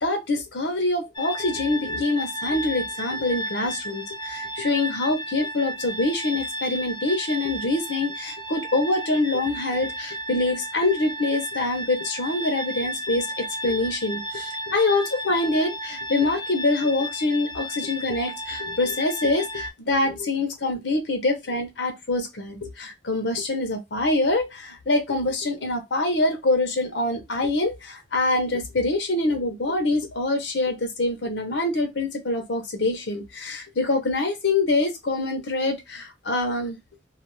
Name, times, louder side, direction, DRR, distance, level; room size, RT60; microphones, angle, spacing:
voice 1, 0.0-36.8, left 2 dB, 85° left, 0.8 m, -25 dB
sound 1, 1.2-19.7, equal, 25° left, 0.5 m, -33 dB
2.4 x 2.3 x 3.0 m
head